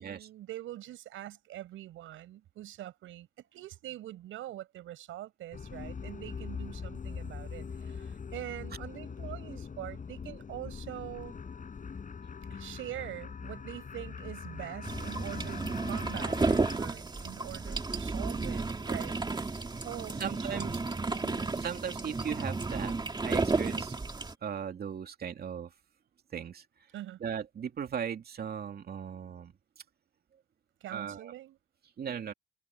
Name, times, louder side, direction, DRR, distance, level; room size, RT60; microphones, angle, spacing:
voice 1, 0.0-3.3 3.5-11.4 12.5-19.2 19.8-20.7 26.9-27.2 30.8-31.6, right 14 dB, 85° right, 6.7 m, -44 dB
sound 1, 5.5-16.8, left 6 dB, 40° left, 7.4 m, -42 dB
sound 2, 14.8-24.3, right 3 dB, 20° right, 2.2 m, -32 dB
voice 2, 20.2-20.8 21.6-23.0 23.2-23.9 24.4-25.7 26.3-26.6 27.2-29.5 30.9-31.3 32.0-32.3, right 7 dB, 50° right, 2.5 m, -37 dB
cardioid pair, 90°, 20 cm